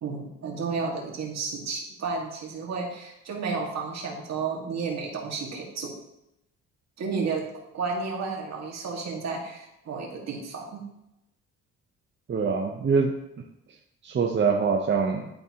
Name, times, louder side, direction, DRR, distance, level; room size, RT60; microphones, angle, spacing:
voice 1, 0.0-5.9 7.0-7.4 7.7-10.8, right 4 dB, 60° right, 0 dB, 1.8 m, -32 dB
voice 2, 12.3-13.2 14.0-15.3, right 5 dB, 40° right, 1 dB, 0.7 m, -24 dB
11.0 x 3.9 x 2.9 m, 0.84 s
cardioid pair, 90°, 30 cm